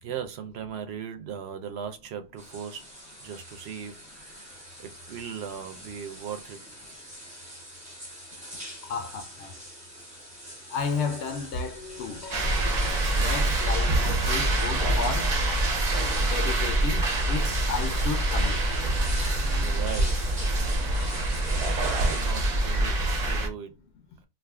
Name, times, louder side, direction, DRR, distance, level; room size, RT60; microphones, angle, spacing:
voice 1, 0.0-2.8 3.2-4.5 4.8-6.8 19.6-20.6 21.5-23.7, right 8 dB, 75° right, 0.9 m, -38 dB
sound 1, 2.4-22.3, equal, 5° right, 1.0 m, -44 dB
voice 2, 8.8-9.6 10.7-12.3 13.2-15.4 16.2-18.6, left 5 dB, 85° left, 0.9 m, -33 dB
sound 2, 11.5-19.8, right 1 dB, 50° left, 0.7 m, -43 dB
sound 3, 12.3-23.5, right 1 dB, 45° right, 0.7 m, -25 dB
2.5 x 2.4 x 3.4 m
omnidirectional pair, 1.1 m